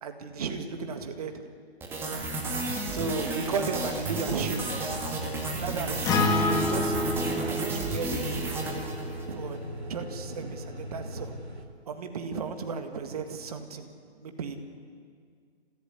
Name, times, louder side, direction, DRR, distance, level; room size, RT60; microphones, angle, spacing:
voice 1, 0.0-1.4 2.9-4.6 5.6-8.4 9.3-9.6 9.9-11.3 11.9-13.9 14.2-14.6, right 5 dB, 35° right, 7 dB, 2.0 m, -34 dB
sound 1, 1.8-9.4, right 2 dB, 5° right, 1.9 m, -33 dB
sound 2, 4.8-11.7, equal, 75° right, 2.5 m, -40 dB
Acoustic guitar, 6.1-10.3, left 2 dB, 10° left, 1.4 m, -29 dB
25.5 x 16.0 x 9.8 m, 2.1 s
figure-of-eight pair, 135°, 32 cm